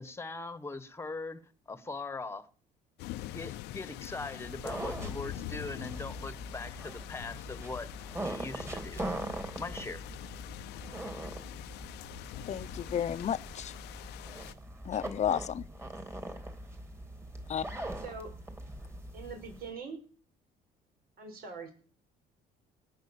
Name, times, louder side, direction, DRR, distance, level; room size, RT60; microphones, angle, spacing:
voice 1, 0.0-1.4 1.7-2.5 3.3-7.9 8.2-9.0 9.6-10.0, left 3 dB, 15° left, 1.4 m, -41 dB
sound 1, 3.0-14.5, left 15 dB, 85° left, 0.7 m, -44 dB
sound 2, 4.4-19.7, right 1 dB, 15° right, 3.5 m, -42 dB
voice 2, 12.4-13.7 14.8-15.6 17.5-17.7, left 9 dB, 40° left, 0.8 m, -32 dB
voice 3, 18.0-18.3 19.1-20.0 21.2-21.7, right 4 dB, 65° right, 5.7 m, -42 dB
18.5 x 7.5 x 7.3 m
cardioid pair, 110°, 17 cm